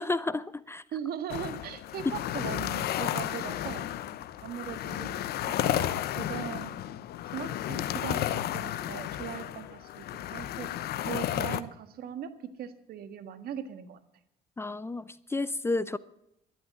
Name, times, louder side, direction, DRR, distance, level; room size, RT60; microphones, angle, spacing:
voice 1, 0.0-0.8 14.6-16.0, left 2 dB, 15° left, 0.6 m, -31 dB
voice 2, 0.9-3.8 4.4-6.7 7.3-10.1 10.3-10.7 11.0-14.0, right 9 dB, 65° right, 1.7 m, -39 dB
sound 1, 1.3-11.6, left 12 dB, 70° left, 0.9 m, -33 dB
13.0 x 11.5 x 8.2 m
cardioid pair, 110°, 17 cm